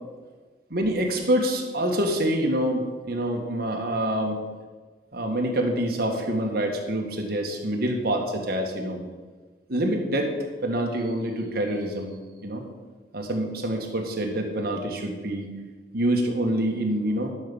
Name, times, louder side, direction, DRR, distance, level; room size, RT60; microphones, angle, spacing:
voice 1, 0.7-4.4 5.1-9.0 9.7-10.3 10.6-12.1 12.4-12.6 13.1-15.5 15.9-17.3, right 1 dB, 60° right, 2 dB, 1.8 m, -26 dB
12.0 x 5.7 x 7.2 m, 1.4 s
head